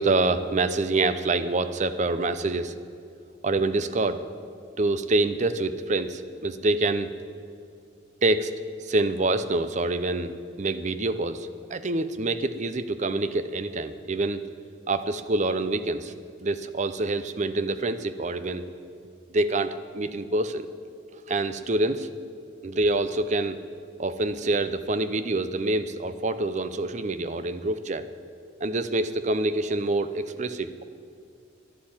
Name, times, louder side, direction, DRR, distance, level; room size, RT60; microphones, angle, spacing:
voice 1, 0.0-2.8 3.4-4.2 4.8-7.1 8.2-8.5 8.8-14.4 14.9-16.1 16.4-18.7 19.3-20.7 21.1-22.1 22.6-23.6 24.0-28.1 28.6-30.8, right 2 dB, 35° right, 12 dB, 0.6 m, -26 dB
11.5 x 11.0 x 8.8 m, 2.3 s
head